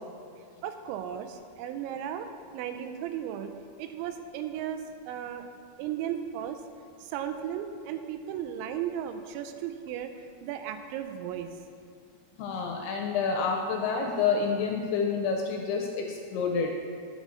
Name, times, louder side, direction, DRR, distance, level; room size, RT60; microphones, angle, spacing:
voice 1, 0.6-2.3 2.5-3.5 3.8-4.8 5.1-5.4 5.8-6.6 7.0-10.1 10.4-11.5, right 10 dB, 90° right, 8 dB, 2.9 m, -35 dB
voice 2, 12.4-16.7, left 5 dB, 75° left, 1 dB, 2.5 m, -28 dB
11.0 x 5.1 x 6.2 m, 2.4 s
omnidirectional pair, 5.2 m